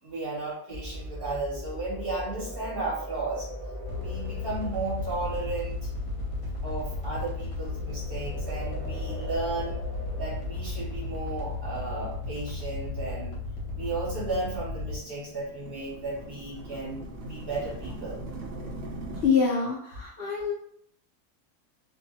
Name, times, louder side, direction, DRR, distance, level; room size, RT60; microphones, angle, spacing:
voice 1, 0.0-3.5 3.9-5.9 6.6-9.8 10.2-13.4 13.7-18.2, right 2 dB, 40° right, -6 dB, 1.0 m, -34 dB
sound 1, 0.7-11.6, equal, 20° left, 0.5 m, -38 dB
sound 2, 3.8-15.0, left 3 dB, 55° left, 1.0 m, -35 dB
sound 3, 12.4-19.3, right 1 dB, 80° right, 0.5 m, -41 dB
voice 2, 19.1-20.5, left 5 dB, 80° left, -4 dB, 0.5 m, -25 dB
2.6 x 2.3 x 2.6 m, 0.66 s
omnidirectional pair, 1.7 m